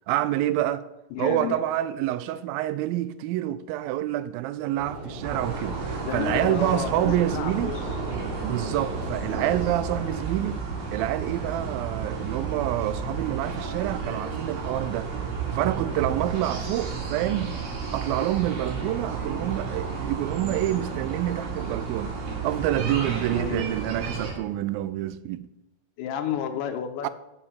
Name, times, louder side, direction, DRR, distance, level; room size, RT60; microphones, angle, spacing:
voice 1, 0.1-0.9 1.2-7.8 8.4-10.6 10.9-15.1 15.5-17.6 17.9-22.1 22.4-25.5 27.0-27.1, right 14 dB, 90° right, 2.4 m, -27 dB
voice 2, 1.1-1.6 6.1-7.7 23.3-23.7 26.0-27.1, left 9 dB, 80° left, 2.2 m, -31 dB
sound 1, 4.8-10.1, right 1 dB, 20° right, 1.8 m, -36 dB
sound 2, 5.2-24.3, right 5 dB, 75° right, 3.8 m, -32 dB
7.1 x 6.6 x 7.1 m
omnidirectional pair, 4.1 m